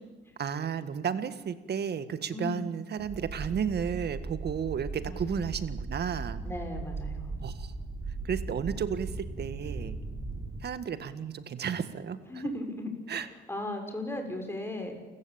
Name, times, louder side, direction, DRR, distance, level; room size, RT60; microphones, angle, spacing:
voice 1, 0.4-6.4 7.4-7.7 8.2-10.0 10.6-12.5 13.1-13.3, right 7 dB, 55° right, 12 dB, 1.8 m, -33 dB
voice 2, 2.3-2.7 5.0-5.4 6.4-7.3 12.3-14.9, left 2 dB, 10° left, 4 dB, 6.2 m, -37 dB
sound 1, 3.0-10.6, right 3 dB, 25° right, 5.0 m, -38 dB
28.5 x 15.0 x 8.9 m, 1.3 s
cardioid pair, 90°, 20 cm